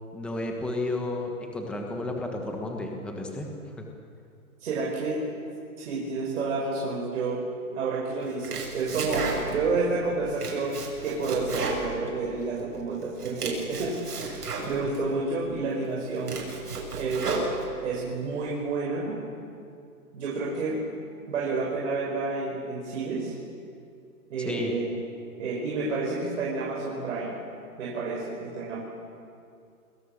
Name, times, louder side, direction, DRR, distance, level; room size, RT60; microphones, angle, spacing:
voice 1, 0.1-3.5 3.8-3.9 24.4-24.7, left 2 dB, ahead, 1 dB, 1.4 m, -32 dB
voice 2, 4.6-5.2 5.8-7.4 7.7-16.4 16.9-17.5 17.8-19.2 20.1-20.8 21.3-23.4 24.3-24.9 25.4-27.4 27.8-28.8, right 3 dB, 55° right, -3 dB, 5.5 m, -30 dB
Domestic sounds home sounds, 8.2-9.8 10.1-12.6 13.0-15.0 15.6-15.7 16.1-18.0, right 3 dB, 80° right, 7.7 m, -33 dB
29.0 x 21.0 x 6.8 m, 2.4 s
hypercardioid pair, 155°, 45 cm